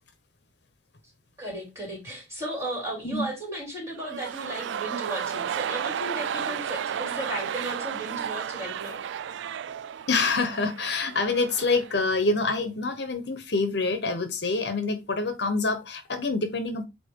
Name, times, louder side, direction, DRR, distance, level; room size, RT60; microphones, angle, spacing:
voice 1, 1.4-9.0, right 1 dB, 15° right, 3.6 m, -35 dB
sound 1, 3.9-12.0 12.3-12.4, right 8 dB, 70° right, 0.3 m, -33 dB
voice 2, 10.1-16.8, left 3 dB, 60° left, 1.0 m, -26 dB
8.3 x 3.0 x 4.5 m
head